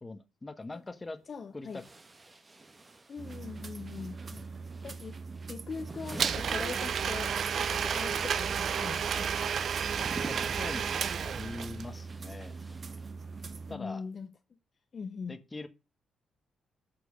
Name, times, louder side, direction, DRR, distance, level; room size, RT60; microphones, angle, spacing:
voice 1, 0.0-1.2 1.5-1.8 4.3-4.5 10.2-12.5 13.7-14.0 15.3-15.7, left 2 dB, 25° left, 1.2 m, -42 dB
sound 1, 0.7-0.8 1.6-7.5 7.7-13.6, right 2 dB, 30° right, 1.3 m, -48 dB
voice 2, 1.3-1.8 3.1-4.2 4.8-5.2 5.5-9.6 13.7-14.3 14.9-15.3, left 5 dB, 50° left, 0.7 m, -41 dB
sound 2, 3.2-13.8, right 4 dB, 45° right, 1.1 m, -43 dB
Domestic sounds home sounds, 6.2-11.8, right 7 dB, 60° right, 0.5 m, -31 dB
8.5 x 4.6 x 6.3 m
supercardioid pair, 65°, 0 cm